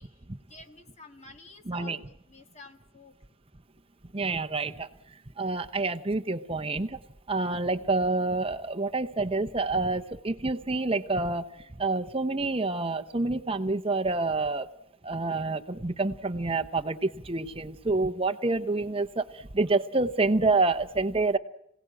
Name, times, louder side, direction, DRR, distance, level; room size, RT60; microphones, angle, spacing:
voice 1, 0.0-2.0 2.3-3.2, left 3 dB, 30° left, 6 dB, 1.7 m, -50 dB
voice 2, 1.7-2.0 4.1-4.9 5.4-7.0 7.3-11.5 11.8-14.7 15.0-21.4, right 3 dB, 25° right, 9 dB, 0.8 m, -28 dB
26.5 x 17.5 x 8.8 m, 0.81 s
head